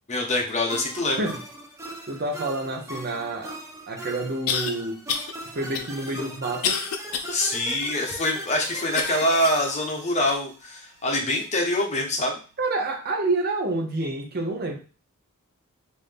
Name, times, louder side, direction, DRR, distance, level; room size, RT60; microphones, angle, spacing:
voice 1, 0.1-1.3 7.3-12.4, left 1 dB, 30° left, 1 dB, 0.8 m, -25 dB
sound 1, 0.7-11.1, right 1 dB, 15° right, 0.8 m, -39 dB
voice 2, 2.1-3.5 3.9-5.1 5.5-6.8 12.6-14.8, right 2 dB, 45° right, 3 dB, 0.7 m, -28 dB
sound 2, 3.5-3.6 4.5-4.7 5.1-5.3 5.7-7.3 7.8-7.9 8.9-9.7 10.3-10.4 11.1-11.2, left 6 dB, 80° left, 0.5 m, -29 dB
3.7 x 2.6 x 3.3 m, 0.36 s
head